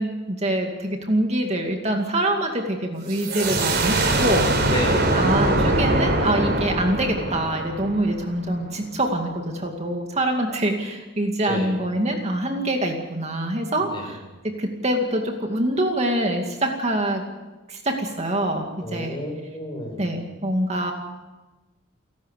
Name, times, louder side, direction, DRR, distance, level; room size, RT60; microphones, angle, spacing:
voice 1, 0.0-4.5 5.1-17.2 17.7-19.2 20.0-20.9, right 1 dB, 35° right, 3 dB, 2.3 m, -25 dB
sound 1, 3.1-8.6, right 1 dB, 55° right, 4.1 m, -22 dB
voice 2, 4.7-5.2 11.5-11.8 13.9-14.1 18.8-20.1, left 1 dB, 25° left, 2 dB, 5.5 m, -30 dB
29.5 x 12.5 x 8.3 m, 1.2 s
head